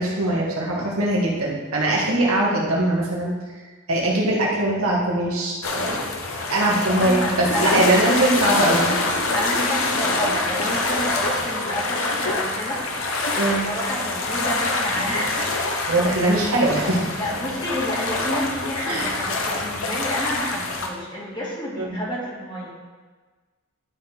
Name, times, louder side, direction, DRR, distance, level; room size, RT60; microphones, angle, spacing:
voice 1, 0.0-3.3 3.9-6.0 6.5-8.9 13.4-13.7 15.9-17.1 18.9-19.1 21.8-22.0, right 1 dB, 90° right, -3 dB, 1.9 m, -21 dB
sound 1, 5.6-20.9, left 2 dB, 70° left, 1.0 m, -25 dB
voice 2, 7.0-8.8 9.3-12.8 13.4-15.6 17.2-22.7, equal, 20° left, -5 dB, 1.8 m, -30 dB
11.5 x 4.0 x 4.5 m, 1.4 s
head